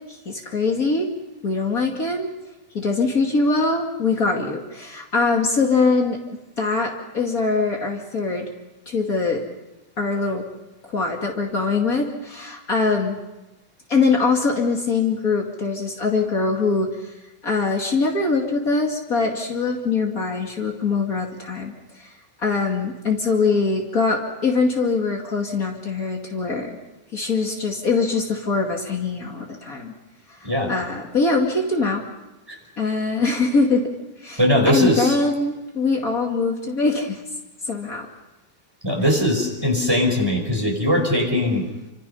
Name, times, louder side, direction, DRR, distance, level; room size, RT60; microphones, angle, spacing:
voice 1, 0.1-1.1 1.4-2.3 2.7-6.2 6.6-8.5 8.9-9.4 10.0-10.5 10.8-13.2 13.9-17.1 17.4-22.1 22.4-26.8 27.1-29.9 30.4-32.0 32.8-33.9 34.2-34.4 34.6-37.2 37.7-38.1, left 4 dB, 50° left, 0 dB, 2.8 m, -22 dB
voice 2, 34.4-35.2 38.8-41.7, left 1 dB, 15° right, 2 dB, 5.1 m, -20 dB
29.0 x 26.0 x 5.6 m, 1.0 s
omnidirectional pair, 1.9 m